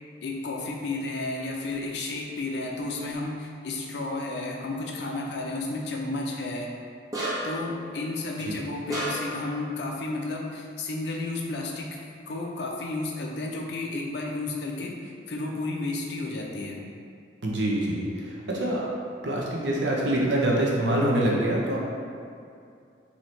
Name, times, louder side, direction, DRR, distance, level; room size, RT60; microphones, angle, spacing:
voice 1, 0.2-6.7 7.4-12.0 12.3-15.0 15.3-16.8, left 2 dB, 60° left, 0 dB, 0.5 m, -32 dB
sound 1, 7.1-7.7 8.9-9.5, right 1 dB, 20° right, 0.6 m, -30 dB
voice 2, 17.4-18.9 19.2-21.8, right 1 dB, 70° right, -4 dB, 0.6 m, -25 dB
3.1 x 2.8 x 4.2 m, 2.4 s
head